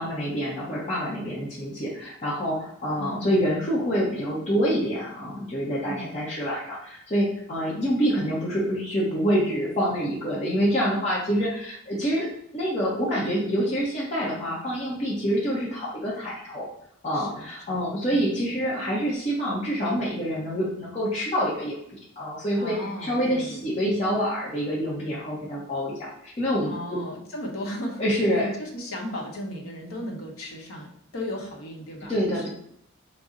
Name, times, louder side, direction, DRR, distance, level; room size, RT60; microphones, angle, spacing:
voice 1, 0.0-12.3 12.5-16.7 17.0-27.0 28.0-28.5 32.1-32.5, equal, 30° left, -7 dB, 0.7 m, -26 dB
voice 2, 3.0-3.4 5.9-6.1 14.4-14.6 17.1-18.3 22.5-23.7 26.7-32.5, left 1 dB, 90° left, 0 dB, 0.8 m, -36 dB
4.0 x 2.0 x 3.6 m, 0.69 s
head